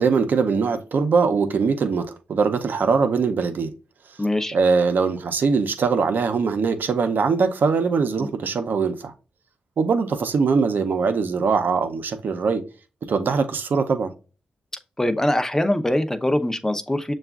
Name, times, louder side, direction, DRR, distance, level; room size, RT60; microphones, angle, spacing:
voice 1, 0.0-3.7 4.5-9.1 9.8-12.6 13.1-14.1, right 5 dB, 65° right, 0.6 m, -22 dB
voice 2, 4.2-4.6 8.2-8.3 15.0-17.1, left 1 dB, 15° left, 0.6 m, -23 dB
6.6 x 2.3 x 2.3 m
cardioid pair, 55°, 3 cm